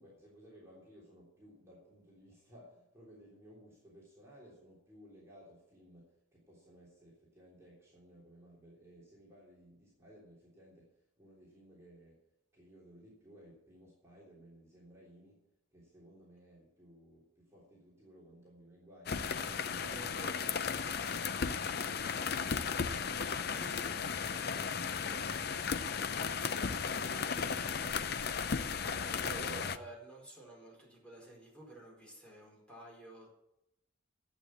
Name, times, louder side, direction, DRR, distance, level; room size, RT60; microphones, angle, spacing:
voice 1, 0.0-12.2 12.5-15.4 15.7-20.1 20.9-28.1, equal, 15° right, -6 dB, 3.4 m, -58 dB
sound 1, 19.1-29.8, left 6 dB, 50° left, 0.6 m, -35 dB
voice 2, 19.8-21.0 28.8-33.3, right 2 dB, 5° left, -3 dB, 4.8 m, -51 dB
12.0 x 8.3 x 7.5 m, 0.85 s
head